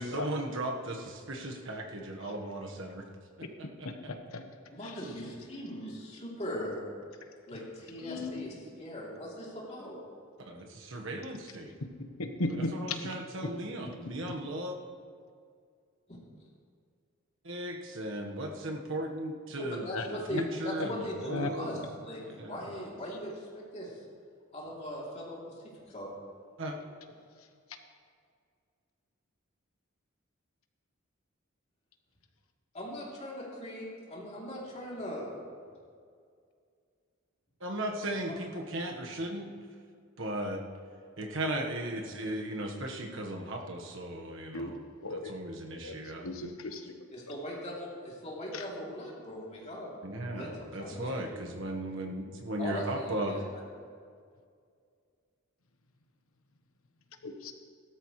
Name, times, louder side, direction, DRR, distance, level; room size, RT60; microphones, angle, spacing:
voice 1, 0.0-3.0 3.4-3.9 10.4-11.7 12.7-14.8 17.4-21.9 22.2-22.6 26.6-26.8 37.6-39.5 40.2-40.6 41.2-44.8 45.1-46.3 50.0-53.4, right 1 dB, 65° right, 1 dB, 1.4 m, -36 dB
voice 2, 4.7-6.9 7.5-10.0 16.1-16.2 19.6-23.9 24.5-25.4 25.9-26.1 32.7-35.3 47.1-50.0 50.3-51.4 52.6-53.4, equal, 30° left, -4 dB, 3.1 m, -40 dB
voice 3, 8.0-8.4 12.4-13.0 19.9-20.1 20.8-20.9 21.3-21.5 44.5-44.7 45.0-45.3 45.8-46.0 46.2-46.9 48.5-48.6 57.2-57.5, left 2 dB, 85° left, 6 dB, 1.2 m, -35 dB
16.5 x 13.0 x 3.2 m, 2.2 s
head